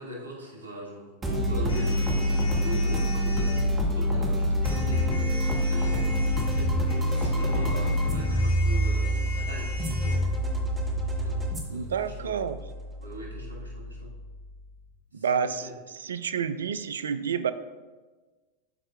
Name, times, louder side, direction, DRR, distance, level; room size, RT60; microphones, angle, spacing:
voice 1, 0.0-6.1 6.4-6.8 7.1-10.2 11.1-12.4 13.0-14.1 15.1-15.7, left 1 dB, 90° left, -3 dB, 1.9 m, -41 dB
sound 1, 1.2-14.6, equal, 20° right, 1.2 m, -27 dB
sound 2, 1.7-3.6 4.6-10.2, left 2 dB, 85° right, 2.0 m, -42 dB
voice 2, 11.7-12.6 15.1-15.7 16.0-17.5, right 7 dB, 65° right, 12 dB, 0.3 m, -29 dB
12.0 x 4.4 x 2.4 m, 1.3 s
figure-of-eight pair, 90°, 0 cm